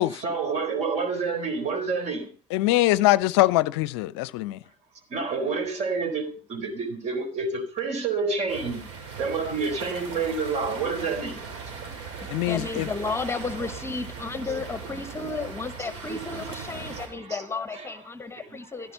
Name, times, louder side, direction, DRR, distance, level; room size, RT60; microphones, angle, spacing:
voice 1, 0.1-2.3 5.1-8.8 9.2-11.4 11.7-11.8 15.8-16.1 16.9-17.4 17.7-17.9 18.4-18.9, right 4 dB, 45° right, 4.2 m, -29 dB
voice 2, 2.5-4.6 12.3-12.9, left 17 dB, 60° left, 0.6 m, -22 dB
sound 1, 8.5-17.1, right 5 dB, 60° right, 5.8 m, -39 dB
voice 3, 12.5-18.9, left 3 dB, 15° left, 1.2 m, -33 dB
15.5 x 12.5 x 5.5 m
figure-of-eight pair, 60°, 16 cm